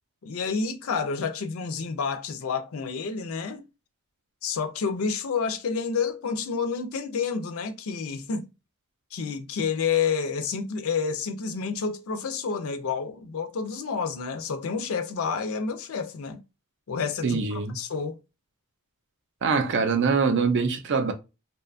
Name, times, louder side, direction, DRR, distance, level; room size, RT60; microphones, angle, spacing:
voice 1, 0.2-3.6 4.4-8.5 9.1-16.4 16.9-18.2, left 5 dB, 65° left, 0.4 m, -29 dB
voice 2, 17.2-17.8 19.4-21.1, right 5 dB, 55° right, 0.5 m, -24 dB
2.6 x 2.2 x 2.4 m
head